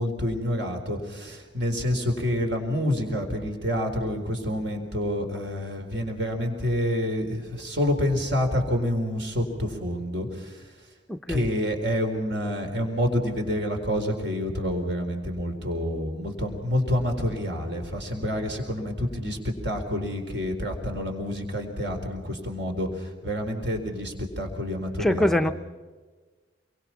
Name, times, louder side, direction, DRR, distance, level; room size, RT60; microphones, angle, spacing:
voice 1, 0.0-10.6 11.3-25.5, equal, 60° right, 3 dB, 4.2 m, -28 dB
voice 2, 11.1-11.5 25.0-25.5, left 1 dB, ahead, 7 dB, 0.6 m, -23 dB
26.5 x 23.5 x 5.9 m, 1.3 s
head